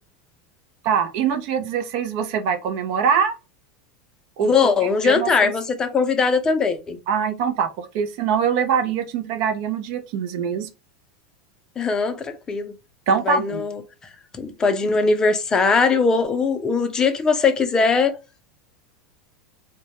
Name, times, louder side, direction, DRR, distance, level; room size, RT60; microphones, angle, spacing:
voice 1, 0.8-3.4 4.4-4.5 5.0-5.5 7.1-10.7 13.1-13.6, right 6 dB, 60° right, 0.5 m, -23 dB
voice 2, 4.4-7.0 11.8-12.7 13.2-13.8 14.3-18.2, left 4 dB, 20° left, 0.5 m, -20 dB
2.2 x 2.1 x 2.8 m
supercardioid pair, 120°, 3 cm